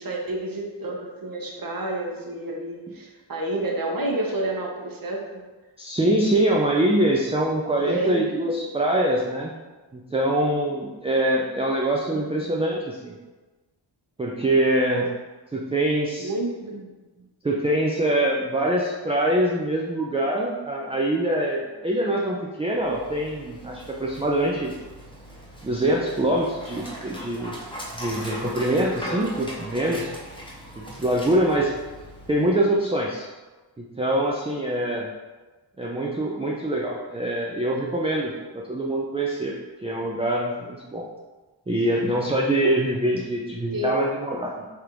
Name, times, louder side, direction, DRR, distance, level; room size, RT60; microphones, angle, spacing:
voice 1, 0.0-5.4 7.8-8.3 12.1-12.5 16.2-17.0 43.7-44.1, right 1 dB, 50° right, 0 dB, 0.8 m, -29 dB
voice 2, 5.8-9.5 9.9-13.1 14.2-15.1 15.5-16.3 17.4-24.7 25.6-27.6 27.9-30.2 31.0-31.7 32.3-33.3 33.8-35.1 35.8-39.6 39.8-41.1 41.7-44.5, right 1 dB, 15° right, -2 dB, 0.3 m, -24 dB
Dog, 22.7-32.7, equal, 10° left, 0.7 m, -39 dB
3.4 x 2.5 x 4.5 m, 1.2 s
wide cardioid pair, 100°, 44 cm